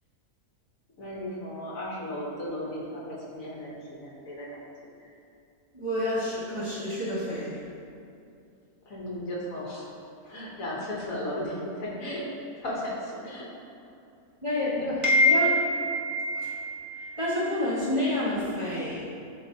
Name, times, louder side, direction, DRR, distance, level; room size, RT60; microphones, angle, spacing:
voice 1, 1.0-4.6 5.0-5.1 8.8-9.9 10.2-12.3 12.5-13.5, left 1 dB, 60° left, -4 dB, 1.5 m, -35 dB
voice 2, 5.7-7.6 14.4-19.1, left 1 dB, 20° right, -10 dB, 1.5 m, -27 dB
11.5 x 4.1 x 2.8 m, 2.5 s
omnidirectional pair, 1.6 m